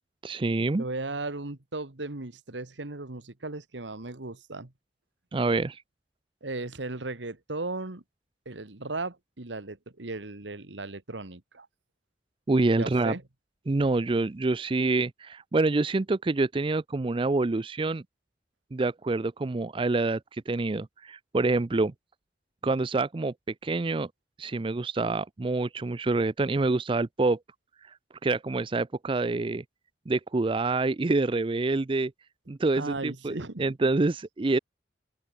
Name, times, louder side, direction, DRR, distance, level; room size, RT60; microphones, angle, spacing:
voice 1, 0.2-0.8 5.3-5.8 12.5-13.1 13.7-18.0 18.7-21.9 22.6-23.3 23.6-24.1 24.4-27.4 28.2-29.6 30.1-32.1 32.5-34.6, right 3 dB, 30° right, 0.5 m, -26 dB
voice 2, 0.8-4.7 6.4-8.0 8.5-11.7 12.7-13.2 32.7-33.7, right 2 dB, 90° right, 1.8 m, -36 dB
open air
head